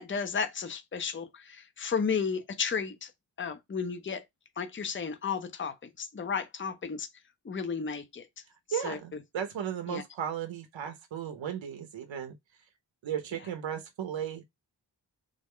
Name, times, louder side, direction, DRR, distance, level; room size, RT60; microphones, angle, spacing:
voice 1, 0.0-3.1 3.4-4.2 4.6-7.1 7.4-8.3 8.8-9.0 9.9-10.0, left 6 dB, 25° left, 0.6 m, -33 dB
voice 2, 8.7-12.4 13.0-14.4, right 9 dB, 85° right, 0.7 m, -35 dB
3.7 x 2.1 x 3.5 m
cardioid pair, 60°, 45 cm